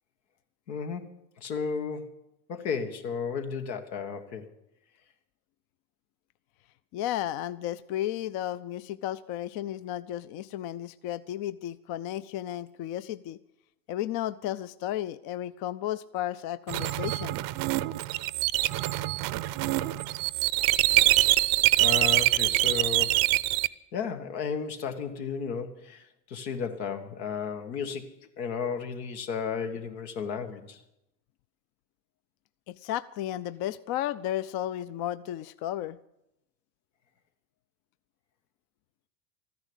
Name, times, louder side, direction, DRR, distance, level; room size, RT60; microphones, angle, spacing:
voice 1, 0.7-2.1 2.5-4.5 21.3-21.5 21.8-23.2 23.9-30.8, left 6 dB, 85° left, 6 dB, 1.8 m, -34 dB
voice 2, 6.9-13.4 13.9-17.4 32.7-36.0, left 12 dB, 50° left, 15 dB, 0.6 m, -33 dB
sound 1, 16.7-23.7, right 17 dB, 50° right, 0.6 m, -25 dB
14.0 x 10.5 x 8.1 m, 0.85 s
supercardioid pair, 100°, 49 cm